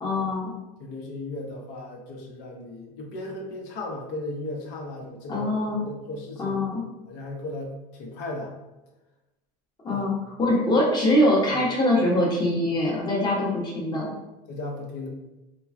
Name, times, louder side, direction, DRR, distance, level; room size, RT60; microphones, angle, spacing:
voice 1, 0.0-0.5 5.3-5.8 6.4-6.8 9.8-14.1, left 1 dB, 20° left, -4 dB, 0.9 m, -23 dB
voice 2, 0.8-6.6 7.1-8.5 9.9-10.0 10.7-10.8 11.5-11.6 14.5-15.1, left 2 dB, 65° left, 1 dB, 0.8 m, -36 dB
3.1 x 2.3 x 2.4 m, 1.0 s
supercardioid pair, 110°, 19 cm